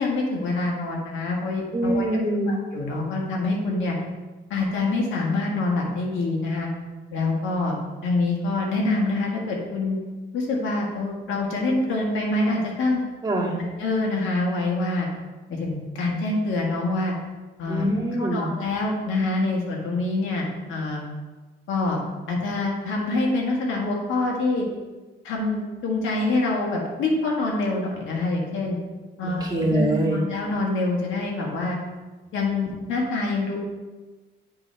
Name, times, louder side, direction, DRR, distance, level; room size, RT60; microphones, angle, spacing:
voice 1, 0.0-2.1 2.5-4.0 4.5-6.7 7.1-7.8 8.0-10.0 10.3-13.0 13.6-15.1 15.5-17.1 17.6-17.8 18.1-21.1 21.7-22.0 22.3-24.7 25.2-28.8 29.2-31.8 32.3-33.6, left 2 dB, 90° left, -1 dB, 1.7 m, -25 dB
voice 2, 1.7-2.5 13.2-13.6 17.7-18.5 29.2-30.2, right 1 dB, 20° right, -3 dB, 1.8 m, -24 dB
8.8 x 4.0 x 4.5 m, 1.2 s
cardioid pair, 90°, 20 cm